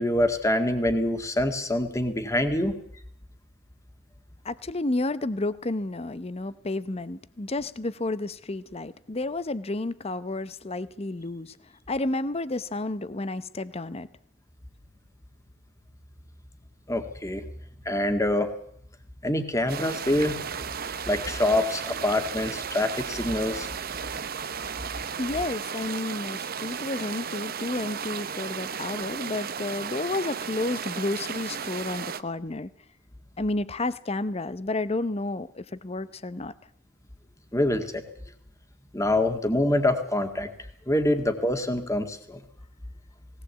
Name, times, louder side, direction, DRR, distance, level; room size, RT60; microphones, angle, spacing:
voice 1, 0.0-2.8 16.9-17.4 17.9-18.5 19.2-20.4 21.1-23.7 37.5-38.0 38.9-40.5 40.9-42.4, left 1 dB, 15° left, 1.9 m, -25 dB
voice 2, 4.4-11.6 11.9-14.1 25.2-32.7 33.4-36.5, left 2 dB, 30° left, 0.8 m, -31 dB
sound 1, 19.7-32.2, right 7 dB, 50° right, 0.9 m, -34 dB
19.0 x 18.0 x 8.2 m
head